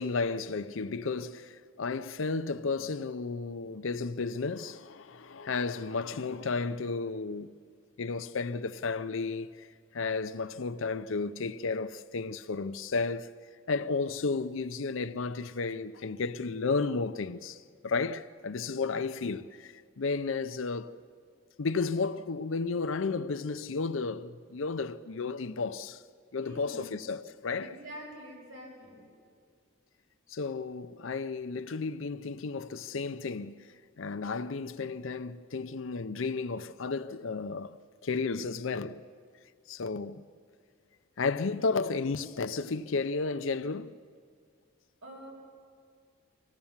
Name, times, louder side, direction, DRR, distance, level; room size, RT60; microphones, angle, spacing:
voice 1, 0.0-7.5 8.0-9.7 9.9-13.3 13.7-21.0 21.6-26.0 26.3-27.8 30.3-33.7 34.0-39.0 39.7-40.2 41.2-43.9, left 4 dB, 75° left, 0.6 m, -33 dB
voice 2, 26.4-26.9 27.6-29.0 45.0-45.3, equal, 85° right, 6.6 m, -46 dB
25.5 x 16.0 x 7.2 m
head